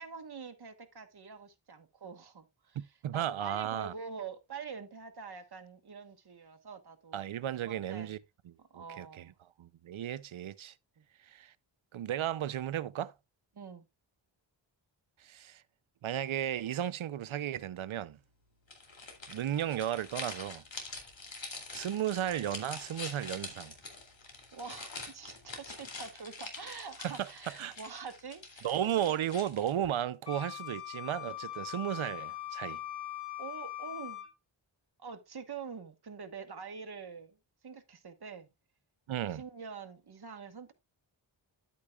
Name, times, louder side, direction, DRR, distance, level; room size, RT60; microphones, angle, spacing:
voice 1, 0.0-2.8 3.1-7.2 7.6-8.1 8.6-9.4 11.0-11.1 13.5-13.8 24.5-29.1 33.4-34.2 35.0-37.4 37.6-38.5 39.2-40.7, right 5 dB, 55° right, 1.3 m, -45 dB
voice 2, 2.7-3.9 7.1-8.2 8.5-9.3 9.6-10.7 11.2-11.5 11.9-13.1 15.2-15.6 16.0-18.2 19.3-20.6 21.7-23.7 27.0-27.3 27.6-27.8 28.6-32.8 39.1-39.4, right 11 dB, 85° right, 0.6 m, -34 dB
sound 1, 18.7-29.9, left 3 dB, 70° left, 2.7 m, -45 dB
Wind instrument woodwind instrument, 30.3-34.3, left 13 dB, 55° left, 2.8 m, -41 dB
11.0 x 8.5 x 2.3 m
wide cardioid pair, 75°, 47 cm